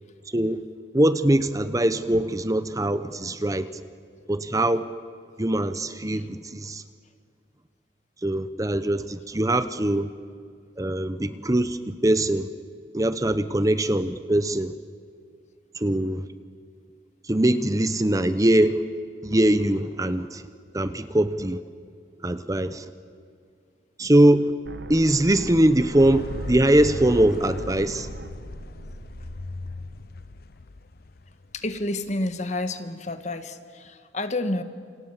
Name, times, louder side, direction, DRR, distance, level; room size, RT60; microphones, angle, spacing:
voice 1, 0.9-3.7 4.3-4.9 5.4-6.8 8.2-10.1 10.8-12.5 12.9-14.7 15.7-16.2 17.3-18.8 19.2-20.4 20.7-21.6 22.2-22.8 24.0-24.5 24.9-28.1, right 1 dB, 20° right, 12 dB, 0.9 m, -22 dB
sound 1, 24.6-30.6, right 1 dB, 80° right, 1.4 m, -41 dB
sound 2, 26.0-32.3, left 2 dB, 60° left, 0.7 m, -38 dB
voice 2, 31.5-34.6, left 2 dB, 40° left, 9 dB, 1.7 m, -30 dB
28.5 x 27.5 x 7.4 m, 2.2 s
head